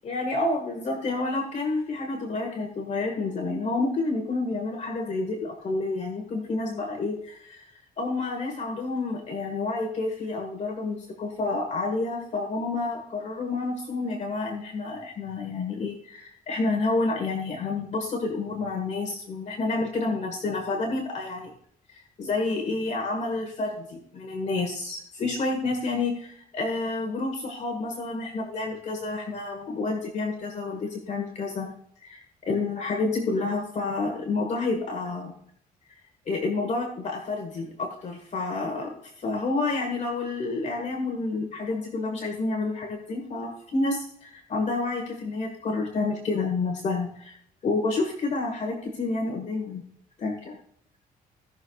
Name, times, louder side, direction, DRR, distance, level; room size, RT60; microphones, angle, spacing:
voice 1, 0.0-7.7 8.0-21.5 21.9-31.7 32.0-35.3 36.3-47.4 47.6-49.8 50.2-50.6, left 3 dB, 50° left, 2 dB, 1.7 m, -29 dB
17.5 x 6.4 x 2.4 m, 0.71 s
cardioid pair, 125°, 16 cm